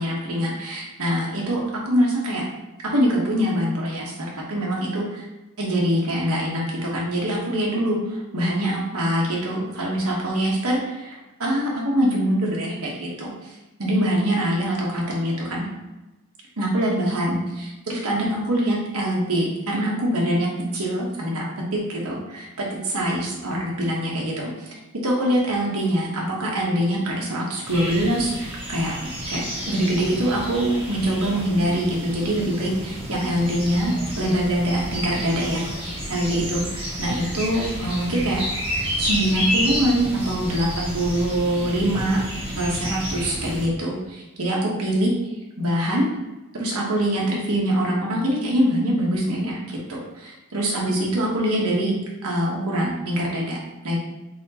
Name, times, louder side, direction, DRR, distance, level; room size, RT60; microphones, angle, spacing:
voice 1, 0.0-1.6 1.8-2.5 2.9-5.3 5.6-15.7 16.6-21.4 21.7-24.7 25.0-35.6 36.1-38.4 39.0-42.2 42.5-45.1 45.6-46.1 46.5-52.0 52.2-54.0, equal, 75° right, -3 dB, 1.2 m, -24 dB
sound 1, 27.6-43.7, equal, 25° right, 1.3 m, -30 dB
4.4 x 4.2 x 2.9 m, 1.0 s
head